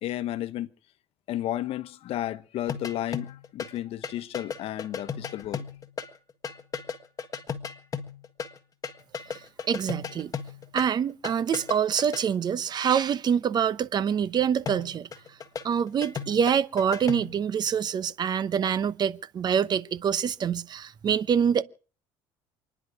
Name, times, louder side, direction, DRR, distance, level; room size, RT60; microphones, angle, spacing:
voice 1, 0.0-0.7 1.3-5.6, left 13 dB, 60° left, 1.1 m, -32 dB
sound 1, 2.7-8.6 8.8-12.2 14.7-17.4, left 6 dB, 30° left, 1.6 m, -36 dB
voice 2, 9.7-10.3 10.7-15.1 15.6-21.6, right 8 dB, 40° right, 0.9 m, -25 dB
28.5 x 10.5 x 4.8 m
cardioid pair, 120°, 11 cm